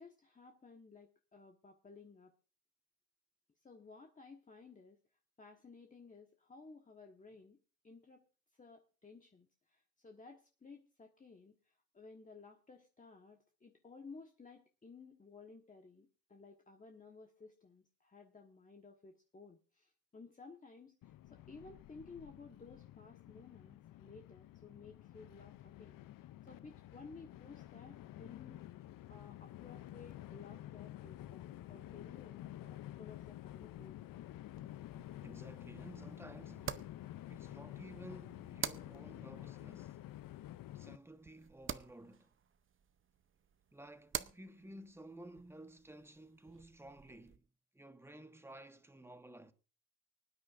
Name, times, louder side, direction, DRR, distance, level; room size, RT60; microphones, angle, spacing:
voice 1, 0.0-2.3 3.6-5.0 5.4-7.6 7.8-8.3 8.5-26.0 26.4-33.9, left 4 dB, 20° left, 1.3 m, -56 dB
Train, 21.0-41.0, left 14 dB, 70° left, 0.6 m, -50 dB
sound 1, 34.5-47.4, right 8 dB, 35° right, 0.7 m, -49 dB
voice 2, 35.0-36.9 37.3-40.0 40.7-42.4 43.7-47.4 47.7-49.5, right 1 dB, 5° right, 1.2 m, -54 dB
24.5 x 9.5 x 2.5 m
cardioid pair, 110°, 35 cm